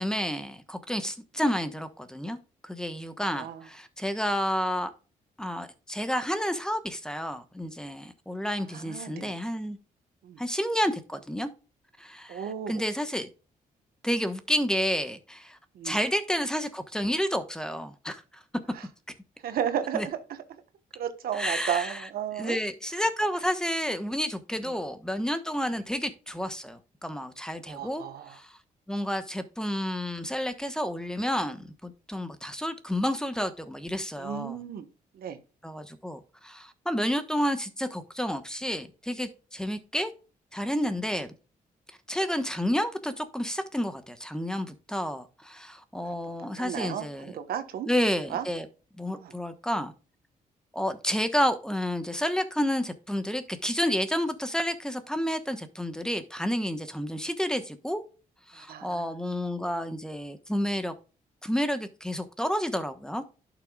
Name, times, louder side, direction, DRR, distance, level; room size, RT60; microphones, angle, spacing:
voice 1, 0.0-2.4 2.6-4.9 5.4-9.8 10.4-11.5 12.0-12.4 12.7-13.3 14.0-15.6 15.8-18.2 19.9-20.1 21.3-22.0 22.4-28.5 28.9-34.6 35.6-40.1 40.5-41.3 42.1-47.3 47.9-48.7 49.0-49.9 50.7-58.0 58.5-60.9 61.4-63.2, equal, 5° left, 1.1 m, -30 dB
voice 2, 3.3-3.6 8.7-9.4 10.2-10.4 12.3-12.8 15.7-16.0 18.7-18.8 19.4-20.2 20.9-22.6 23.0-23.1 24.6-24.7 27.7-28.4 34.2-34.9 35.1-35.4 46.0-47.9 48.3-48.5 49.1-49.3 58.5-59.2, right 9 dB, 80° right, 1.2 m, -34 dB
11.5 x 6.0 x 2.4 m
cardioid pair, 95°, 15 cm